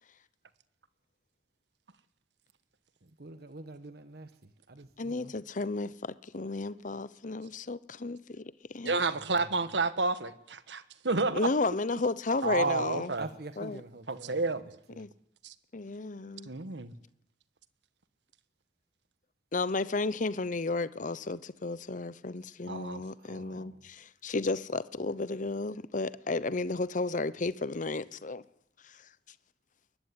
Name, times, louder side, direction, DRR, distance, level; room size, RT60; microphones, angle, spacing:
voice 1, 3.2-4.3 4.7-5.3 8.9-9.0 13.2-14.4 23.2-23.8, right 2 dB, 60° right, 1.3 m, -45 dB
voice 2, 5.0-8.9 11.3-13.1 13.6-13.8 15.0-15.1 15.7-16.5 19.5-28.4, left 3 dB, 45° left, 0.8 m, -33 dB
voice 3, 8.8-11.5 12.4-13.3 14.1-14.7 15.4-15.5 16.4-16.9 22.7-23.0, right 3 dB, 90° right, 1.4 m, -30 dB
22.5 x 19.0 x 9.8 m
head